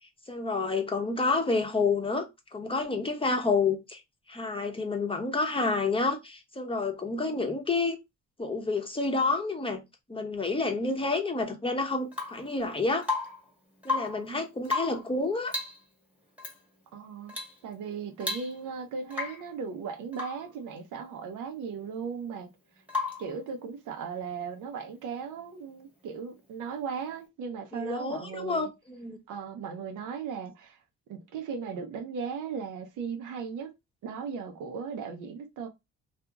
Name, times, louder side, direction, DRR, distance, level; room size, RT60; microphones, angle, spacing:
voice 1, 0.3-2.3 2.5-4.0 4.3-8.0 8.4-9.8 10.1-13.1 13.8-15.5 27.7-29.2, left 3 dB, 20° left, 0.7 m, -29 dB
Rain / Water tap faucet / Drip, 12.1-12.5 13.0-13.5 13.8-14.3 14.6-15.1 15.5-15.8 16.4-16.6 17.3-17.6 17.9-18.0 18.2-18.8 19.1-19.5 20.1-20.5 22.9-23.3 25.2-25.3, left 3 dB, 5° right, 1.1 m, -33 dB
voice 2, 16.9-17.3 17.6-22.5 23.2-28.7 29.3-30.8 31.1-33.7 34.0-35.7, right 6 dB, 90° right, 0.7 m, -37 dB
2.8 x 2.5 x 2.3 m
cardioid pair, 90°, 30 cm